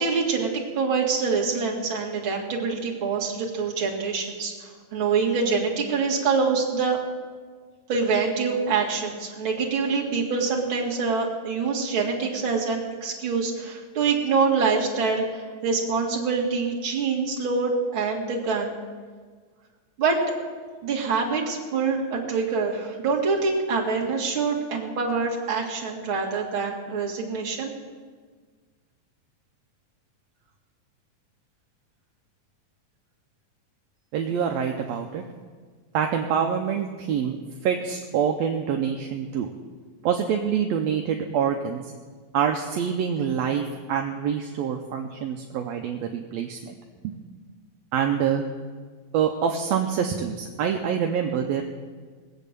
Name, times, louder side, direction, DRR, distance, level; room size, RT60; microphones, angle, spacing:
voice 1, 0.0-7.0 7.9-18.8 20.0-20.2 20.8-27.7, right 4 dB, 45° right, -3 dB, 2.8 m, -25 dB
voice 2, 34.1-35.2 35.9-37.4 37.6-39.5 40.0-41.9 42.3-46.8 47.0-47.1 47.9-48.4 49.1-51.6, right 8 dB, 75° right, 3 dB, 1.8 m, -26 dB
19.5 x 8.2 x 6.8 m, 1.6 s
omnidirectional pair, 3.4 m